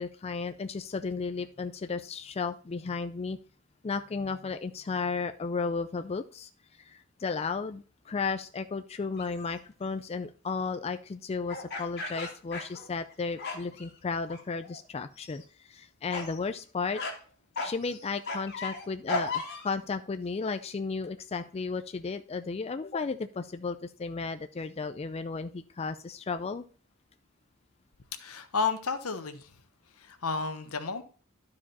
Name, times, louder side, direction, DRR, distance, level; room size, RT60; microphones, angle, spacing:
voice 1, 0.0-3.4 3.8-6.5 6.8-17.0 17.6-26.6, left 4 dB, 30° left, 9 dB, 0.3 m, -34 dB
sound 1, 9.2-9.4 11.5-13.1 13.4-13.9 14.3-14.8 15.2-15.4 16.1-16.4 16.9-17.2 17.6-19.7, left 3 dB, 50° left, 2.0 m, -36 dB
voice 2, 28.2-29.5 30.0-31.0, left 4 dB, 80° left, 9 dB, 1.1 m, -32 dB
12.0 x 4.9 x 4.1 m, 0.40 s
head